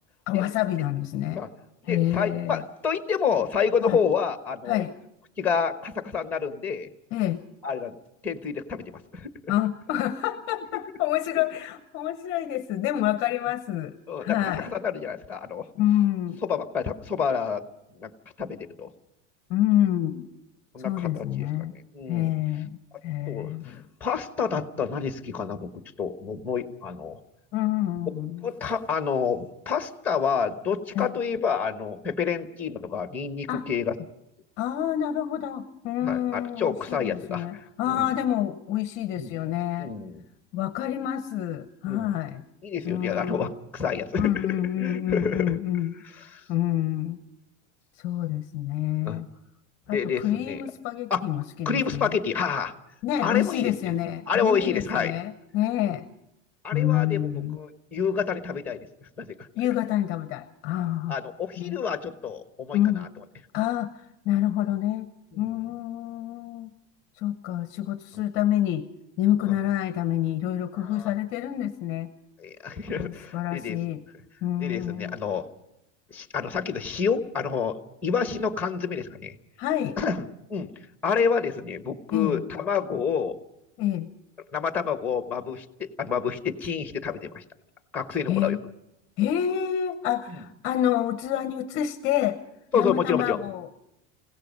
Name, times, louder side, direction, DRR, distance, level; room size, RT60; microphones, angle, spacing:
voice 1, 0.3-1.4 1.8-2.6 3.8-4.0 4.6-4.9 7.1-7.4 9.5-13.9 14.2-14.7 15.7-16.4 19.5-20.3 20.8-21.7 22.1-22.8 23.0-23.8 27.5-28.5 30.9-31.1 33.5-33.6 34.6-39.9 40.5-42.4 42.8-43.5 44.2-45.9 46.5-47.2 48.0-49.3 49.9-52.2 53.0-56.1 56.7-57.6 59.6-61.2 61.6-61.8 62.7-63.1 63.5-65.1 65.4-66.7 67.2-68.9 69.2-72.1 72.9-74.0 74.4-75.2 79.6-80.0 82.1-82.4 83.8-84.1 88.3-88.6 89.2-92.4 92.7-93.7, left 12 dB, 35° left, 11 dB, 0.7 m, -27 dB
voice 2, 1.8-4.8 5.4-6.9 7.6-8.0 8.2-8.8 9.1-9.5 14.1-15.7 16.4-17.6 18.0-18.1 18.4-18.9 20.7-21.5 21.9-22.3 23.3-27.2 28.4-33.9 36.0-37.4 37.9-38.0 39.2-39.3 39.8-40.2 41.9-42.1 42.6-44.5 44.8-45.6 46.2-46.4 49.0-49.2 49.9-50.6 51.1-51.3 51.6-52.7 53.2-53.7 54.3-55.1 56.6-58.9 59.2-59.5 61.1-63.1 65.3-65.5 70.7-71.1 72.4-73.8 74.6-75.4 76.1-79.3 80.0-80.2 80.5-80.7 81.0-83.4 84.5-87.4 87.9-88.6 92.7-93.4, left 6 dB, 5° left, 8 dB, 1.1 m, -28 dB
29.0 x 17.0 x 5.3 m, 0.88 s
supercardioid pair, 175°, 37 cm